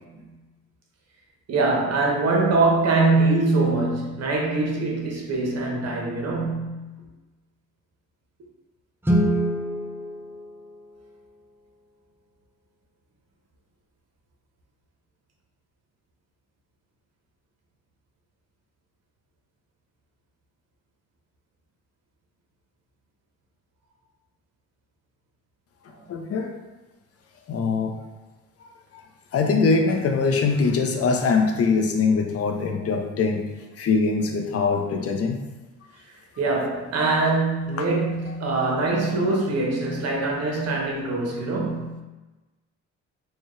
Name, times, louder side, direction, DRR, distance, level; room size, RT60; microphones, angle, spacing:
voice 1, 1.5-6.8 25.9-26.0 36.4-42.0, right 3 dB, 55° right, -1 dB, 1.1 m, -23 dB
Guitar, 9.0-11.6, right 1 dB, 5° right, 0.5 m, -26 dB
voice 2, 26.1-26.5 27.5-27.9 29.3-33.5 33.8-35.4, left 4 dB, 50° left, 3 dB, 0.6 m, -22 dB
4.6 x 2.3 x 3.1 m, 1.1 s
cardioid pair, 90°, 30 cm